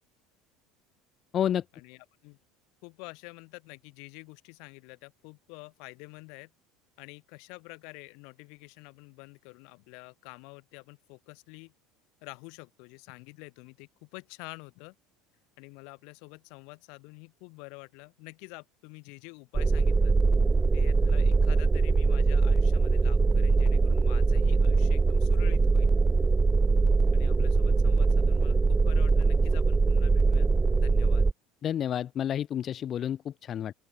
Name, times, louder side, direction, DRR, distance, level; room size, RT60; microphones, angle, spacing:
voice 1, 1.7-2.4 2.8-6.5 7.0-11.7 12.2-15.0 15.6-20.1 20.7-25.9 27.1-30.5 30.8-31.3, left 32 dB, 65° left, 3.9 m, -48 dB
sound 1, 19.5-31.3, right 4 dB, 20° right, 0.7 m, -22 dB
voice 2, 31.6-33.7, left 10 dB, 45° left, 0.5 m, -30 dB
open air
hypercardioid pair, 75°, 0 cm